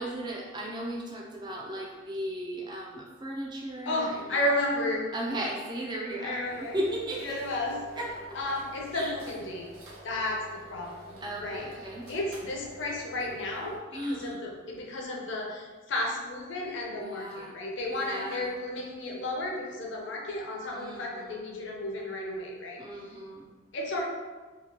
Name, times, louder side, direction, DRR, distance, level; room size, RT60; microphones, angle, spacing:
voice 1, 0.0-4.5 5.1-7.4 8.0-8.4 8.9-9.2 11.2-12.1 13.9-14.4 16.9-17.6 17.9-18.5 20.7-21.4 22.8-23.5, right 1 dB, 20° right, -2 dB, 0.4 m, -36 dB
voice 2, 3.8-5.0 6.2-6.8 7.2-7.8 8.3-9.7 10.0-11.6 12.1-23.2 23.7-24.1, left 1 dB, 60° left, -1 dB, 0.6 m, -33 dB
sound 1, 6.4-13.8, right 1 dB, 85° right, 0.9 m, -48 dB
2.8 x 2.7 x 2.9 m, 1.3 s
head